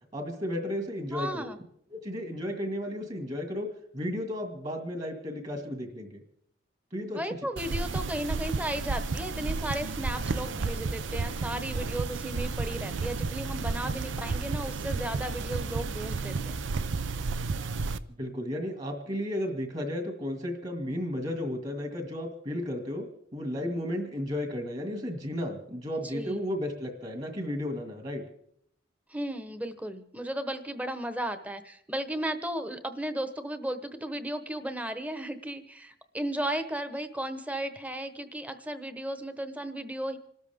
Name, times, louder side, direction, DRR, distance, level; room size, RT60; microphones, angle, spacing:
voice 1, 0.1-1.5 1.9-3.7 3.9-6.2 6.9-7.2 18.2-23.1 23.3-28.2, left 1 dB, 35° right, 4 dB, 2.1 m, -33 dB
voice 2, 1.1-1.6 7.1-16.6 26.0-26.4 29.1-40.2, right 1 dB, 10° right, 9 dB, 1.0 m, -35 dB
sound 1, 7.6-18.0, right 4 dB, 90° right, 0.6 m, -32 dB
26.5 x 13.0 x 3.6 m, 0.68 s
head